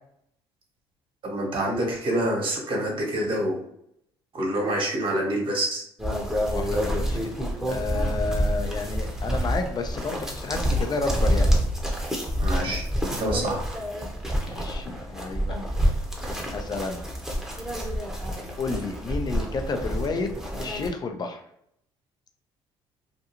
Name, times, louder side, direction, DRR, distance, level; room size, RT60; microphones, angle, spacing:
voice 1, 1.2-3.6 4.3-5.8 12.4-12.8 13.1-13.7, right 1 dB, 45° right, -1 dB, 1.1 m, -26 dB
sound 1, 6.0-20.9, equal, 5° right, 0.8 m, -27 dB
voice 2, 6.5-7.4 7.7-11.5 14.5-15.6 16.5-17.1 18.6-20.3 20.6-21.4, left 3 dB, 35° left, 6 dB, 0.5 m, -31 dB
2.5 x 2.3 x 2.9 m, 0.71 s
hypercardioid pair, 65°, 12 cm